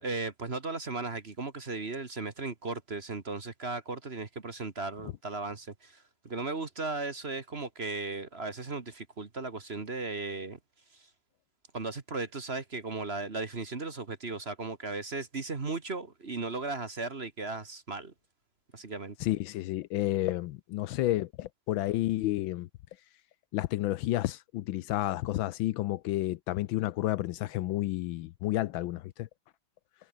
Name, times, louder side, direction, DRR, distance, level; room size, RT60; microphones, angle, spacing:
voice 1, 0.0-10.6 11.7-18.1 18.7-19.1, right 3 dB, 30° right, 1.7 m, -36 dB
voice 2, 19.2-22.7 23.5-29.3, left 15 dB, 75° left, 1.3 m, -31 dB
omnidirectional pair, 2.3 m